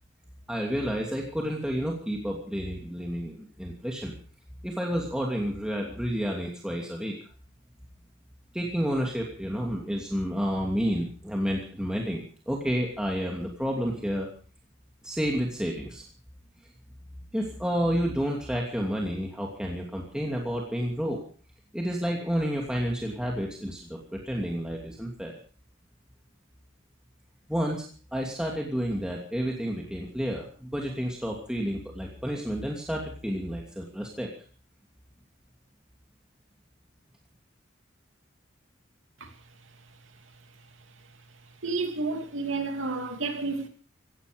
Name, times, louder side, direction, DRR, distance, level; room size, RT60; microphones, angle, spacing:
voice 1, 0.5-4.1 4.6-7.2 8.5-14.3 15.0-16.0 17.3-21.2 21.7-25.3 27.5-27.8 28.1-34.3, equal, 5° right, 2.8 m, -30 dB
voice 2, 41.6-43.7, right 3 dB, 80° right, 3.0 m, -30 dB
17.0 x 16.0 x 5.3 m
head